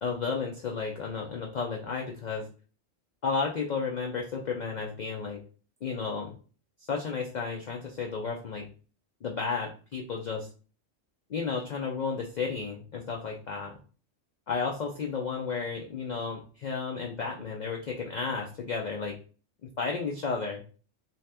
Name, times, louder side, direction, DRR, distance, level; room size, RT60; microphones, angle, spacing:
voice 1, 0.0-2.5 3.2-5.4 5.8-6.3 6.9-8.7 9.2-10.5 11.3-13.8 14.5-19.1 19.6-20.6, left 5 dB, 85° left, 0 dB, 0.4 m, -33 dB
2.7 x 2.4 x 3.3 m, 0.38 s
omnidirectional pair, 1.3 m